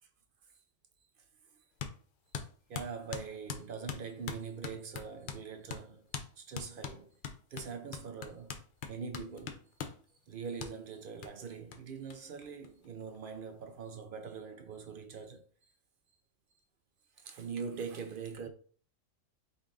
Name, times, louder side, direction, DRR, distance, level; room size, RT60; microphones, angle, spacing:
sound 1, 1.8-2.0 2.3-5.4 5.7-5.8 6.1-6.3 6.5-10.0 10.6-10.7 11.2-11.3 11.7-11.8 12.1-12.2 12.4-13.2, left 7 dB, 60° left, 0.5 m, -41 dB
voice 1, 2.7-6.1 6.4-7.1 7.5-8.6 8.9-9.6 10.3-15.4 17.2-18.5, right 5 dB, 60° right, 0.6 m, -43 dB
5.1 x 2.5 x 3.5 m
omnidirectional pair, 1.3 m